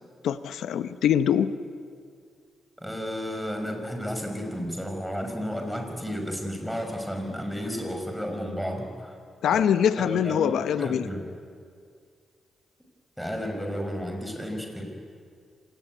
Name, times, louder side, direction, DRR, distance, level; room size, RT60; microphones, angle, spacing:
voice 1, 0.2-1.6 9.4-11.1, left 9 dB, 85° left, 12 dB, 0.9 m, -24 dB
voice 2, 2.8-9.2 9.5-9.6 10.0-11.3 13.2-14.9, equal, ahead, 4 dB, 5.8 m, -32 dB
26.0 x 19.0 x 9.4 m, 2.2 s
cardioid pair, 70°, 0 cm